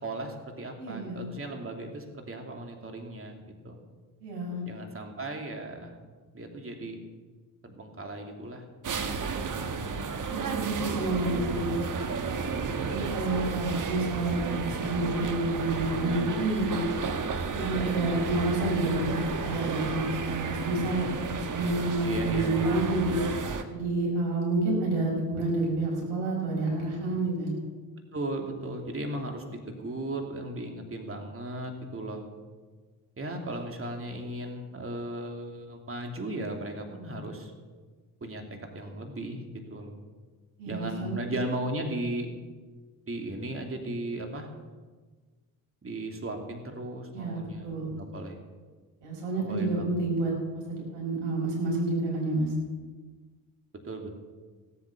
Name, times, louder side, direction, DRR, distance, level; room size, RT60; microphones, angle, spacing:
voice 1, 0.0-3.8 4.7-6.0 6.3-7.0 7.6-8.6 9.0-9.6 10.9-11.4 12.5-13.0 22.0-22.8 27.1-27.2 28.1-32.2 33.2-37.5 38.2-38.4 38.7-39.4 39.7-40.0 40.7-42.3 43.1-44.5 45.8-48.4 49.4-49.9 53.8-54.2, right 1 dB, 30° right, 3 dB, 2.8 m, -36 dB
voice 2, 0.8-1.2 4.2-4.6 10.3-11.8 12.8-16.8 17.5-23.1 23.7-27.5 40.6-41.3 47.1-47.9 49.0-52.5, right 2 dB, 70° right, -3 dB, 5.6 m, -29 dB
sound 1, 8.8-23.6, right 5 dB, 45° right, 1.6 m, -32 dB
17.0 x 8.4 x 6.9 m, 1.4 s
hypercardioid pair, 50°, 44 cm